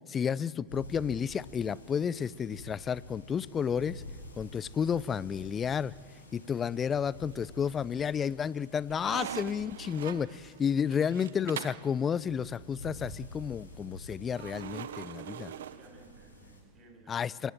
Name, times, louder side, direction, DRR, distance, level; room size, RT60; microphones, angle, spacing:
voice 1, 0.1-4.0 4.4-5.9 6.3-15.5 17.1-17.5, left 7 dB, 25° left, 0.5 m, -31 dB
sound 1, 0.7-16.6, left 2 dB, 80° left, 5.7 m, -49 dB
sound 2, 7.2-7.8 8.2-11.9 14.4-16.4, right 10 dB, 65° right, 0.8 m, -43 dB
voice 2, 15.3-17.5, right 2 dB, 25° right, 7.8 m, -57 dB
27.5 x 17.0 x 7.6 m
figure-of-eight pair, 95°, 0 cm